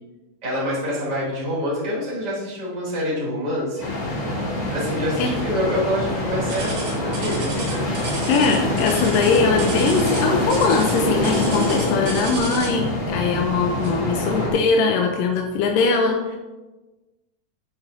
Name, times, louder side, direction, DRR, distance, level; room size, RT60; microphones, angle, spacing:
voice 1, 0.4-3.9 4.7-7.9, equal, 25° right, -7 dB, 3.4 m, -26 dB
sound 1, 3.8-14.5, left 1 dB, 55° left, 4.0 m, -25 dB
sound 2, 6.5-12.9 13.8-14.1 14.6-14.7 15.4-15.5, right 3 dB, 70° right, 3.9 m, -34 dB
voice 2, 8.3-16.4, left 4 dB, 90° left, 2 dB, 2.3 m, -21 dB
12.5 x 7.4 x 2.7 m, 1.2 s
omnidirectional pair, 3.9 m